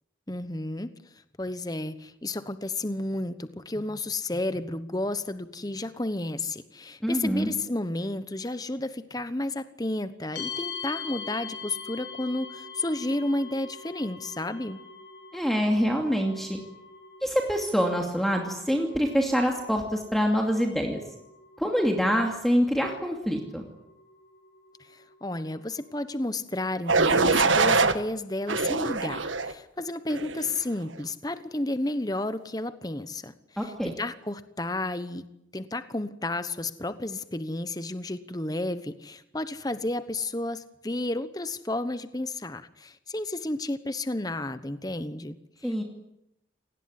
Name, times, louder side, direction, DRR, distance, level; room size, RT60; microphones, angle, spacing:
voice 1, 0.3-0.9 1.4-14.8 24.8-35.2 35.5-45.4 45.6-45.8, left 2 dB, 20° left, 12 dB, 1.1 m, -32 dB
voice 2, 7.0-7.5 15.3-16.6 17.2-21.0 21.6-23.6 33.6-33.9 45.6-45.8, equal, ahead, 2 dB, 2.5 m, -25 dB
sound 1, 10.4-26.1, left 6 dB, 70° left, 6.1 m, -44 dB
sound 2, 26.9-28.0 28.5-29.5 30.1-30.5, right 4 dB, 90° right, 1.8 m, -23 dB
28.5 x 19.0 x 9.7 m, 0.83 s
head